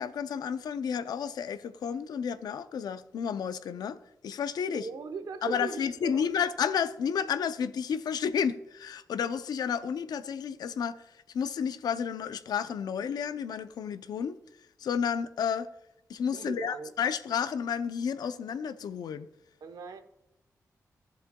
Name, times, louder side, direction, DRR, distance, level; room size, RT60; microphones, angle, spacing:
voice 1, 0.0-4.0 4.2-4.9 5.4-11.0 11.3-14.4 14.8-15.7 16.1-19.3, left 7 dB, 90° left, 0.5 m, -31 dB
voice 2, 4.7-6.2 16.3-16.9 19.6-20.0, right 5 dB, 90° right, 0.9 m, -39 dB
13.5 x 7.2 x 2.2 m
cardioid pair, 60°, 7 cm